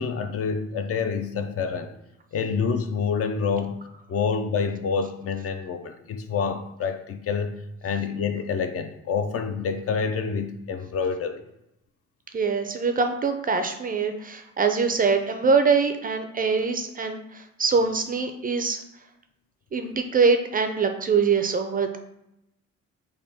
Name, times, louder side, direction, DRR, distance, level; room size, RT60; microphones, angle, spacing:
voice 1, 0.0-1.9 2.3-3.8 4.1-11.4, left 5 dB, 50° left, 8 dB, 0.4 m, -27 dB
voice 2, 12.3-18.8 19.7-22.0, right 5 dB, 30° right, 7 dB, 0.3 m, -23 dB
3.5 x 2.2 x 4.1 m, 0.85 s
cardioid pair, 90°, 30 cm